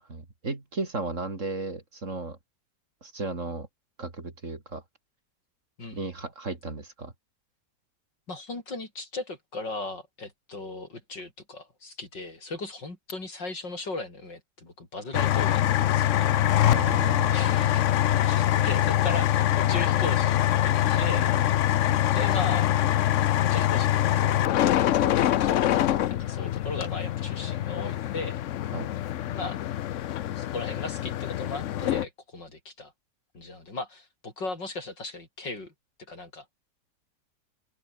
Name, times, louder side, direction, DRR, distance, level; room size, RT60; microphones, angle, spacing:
voice 1, 0.1-2.4 3.0-3.7 4.0-4.8 5.9-7.1 16.6-17.4 20.9-21.1 21.9-22.0 22.3-22.4 28.7-28.9, right 3 dB, 45° right, 3.6 m, -35 dB
voice 2, 5.8-6.1 8.3-16.4 17.3-17.9 18.2-20.3 20.6-21.3 22.1-22.7 23.5-25.8 26.1-28.4 29.3-29.6 30.3-32.9 33.3-35.7 36.1-36.5, left 3 dB, 90° left, 6.5 m, -37 dB
sound 1, 15.1-32.1, left 12 dB, 65° left, 0.8 m, -24 dB
open air
omnidirectional pair, 1.9 m